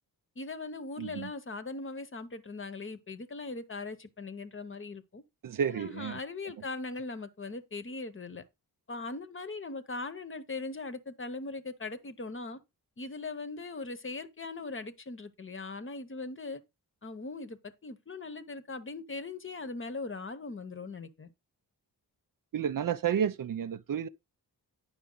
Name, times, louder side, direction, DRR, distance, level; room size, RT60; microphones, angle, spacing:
voice 1, 0.4-5.2 5.7-8.4 8.9-12.6 13.0-16.6 17.0-21.3, left 3 dB, 30° left, 0.9 m, -40 dB
voice 2, 1.0-1.3 5.4-6.2 22.5-24.1, right 8 dB, 55° right, 0.5 m, -31 dB
9.5 x 5.7 x 3.8 m
wide cardioid pair, 125°, 39 cm